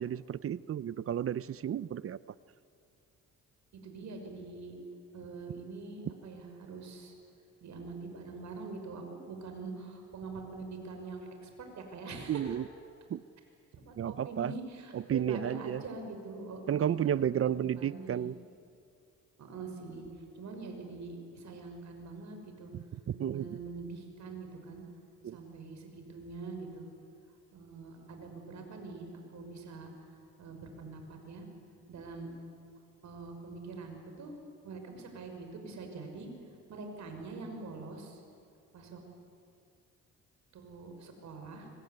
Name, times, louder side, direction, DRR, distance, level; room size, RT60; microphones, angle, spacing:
voice 1, 0.0-2.2 12.3-12.6 13.1-13.2 14.0-14.5 14.9-15.8 16.7-18.4 23.2-23.6 25.2-25.4, right 9 dB, 50° right, 18 dB, 0.7 m, -32 dB
voice 2, 3.7-4.8 5.1-7.1 7.6-12.6 13.7-16.9 17.3-18.3 19.4-20.1 20.3-22.7 23.1-24.8 25.3-26.9 27.5-29.9 30.4-31.4 31.9-32.3 33.0-34.3 34.6-36.3 36.7-38.2 38.7-39.0 40.5-41.7, right 3 dB, 65° right, 4 dB, 6.1 m, -44 dB
25.0 x 24.5 x 9.5 m, 2.4 s
cardioid pair, 90°, 30 cm